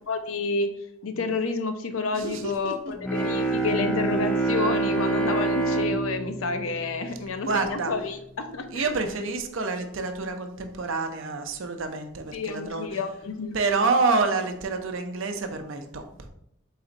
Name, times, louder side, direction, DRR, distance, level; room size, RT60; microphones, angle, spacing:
voice 1, 0.1-0.7 1.0-8.8 12.3-13.6, left 4 dB, 75° left, 7 dB, 0.5 m, -29 dB
voice 2, 2.1-2.8 4.7-5.1 7.4-7.9 8.7-12.9 13.5-16.3, right 3 dB, 65° right, 6 dB, 0.5 m, -28 dB
Bowed string instrument, 3.0-7.9, right 3 dB, 5° left, 0.5 m, -27 dB
4.1 x 4.0 x 2.5 m, 0.73 s
head